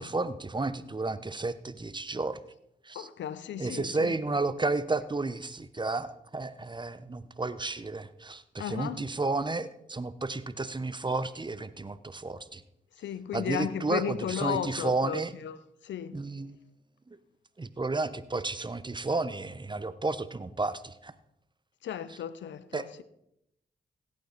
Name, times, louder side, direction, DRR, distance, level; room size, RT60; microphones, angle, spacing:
voice 1, 0.0-2.4 2.8-3.1 3.6-12.6 13.3-15.3 16.1-16.6 17.1-17.2 17.6-21.1 22.7-22.9, right 3 dB, 25° right, 0.9 m, -32 dB
voice 2, 2.9-4.2 8.6-9.0 13.0-15.6 15.8-16.2 21.8-23.0, left 9 dB, 80° left, 0.7 m, -35 dB
16.5 x 8.7 x 4.1 m
supercardioid pair, 40°, 19 cm